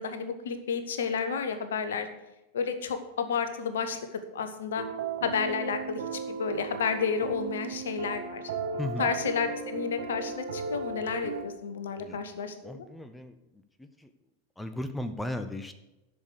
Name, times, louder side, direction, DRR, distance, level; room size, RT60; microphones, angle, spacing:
voice 1, 0.0-2.1 2.5-4.9 5.2-8.4 9.0-12.9, left 6 dB, 60° left, 9 dB, 1.2 m, -31 dB
sound 1, 4.8-11.4, right 5 dB, 55° right, 1.4 m, -36 dB
voice 2, 8.8-9.1 12.0-12.4 12.6-14.1 14.6-15.7, left 1 dB, 5° left, 9 dB, 0.7 m, -37 dB
11.5 x 6.4 x 6.7 m, 0.98 s
figure-of-eight pair, 90°, 0 cm